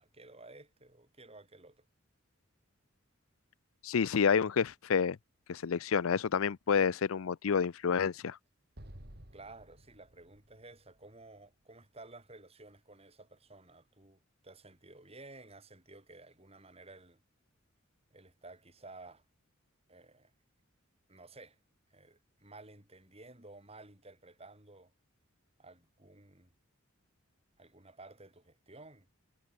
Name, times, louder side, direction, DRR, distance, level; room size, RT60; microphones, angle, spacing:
voice 1, 0.0-1.9 9.3-17.2 18.1-19.2 19.9-20.3 21.1-21.6 21.9-24.9 25.6-26.5 27.6-29.1, right 2 dB, 30° right, 6.1 m, -54 dB
voice 2, 3.8-5.2 5.5-8.4, left 6 dB, 90° left, 0.5 m, -29 dB
Explosion, 8.8-12.0, equal, 50° right, 4.7 m, -54 dB
head